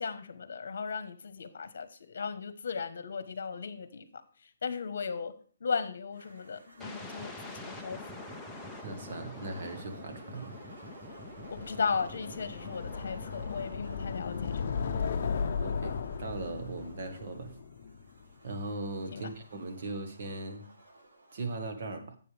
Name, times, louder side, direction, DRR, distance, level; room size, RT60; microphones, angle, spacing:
voice 1, 0.0-4.2 4.6-5.3 5.6-8.0 11.5-15.0 19.1-19.3, left 5 dB, 60° left, 12 dB, 1.2 m, -36 dB
sound 1, 6.1-21.6, right 2 dB, 80° right, 5.9 m, -55 dB
sound 2, 6.8-14.7, left 2 dB, ahead, 0.7 m, -46 dB
voice 2, 8.8-10.6 15.5-17.6 18.4-20.7 21.3-22.2, right 2 dB, 45° right, 5 dB, 1.5 m, -39 dB
sound 3, 11.3-18.4, left 5 dB, 40° left, 0.8 m, -36 dB
12.0 x 7.7 x 3.4 m, 0.43 s
hypercardioid pair, 170°, 0 cm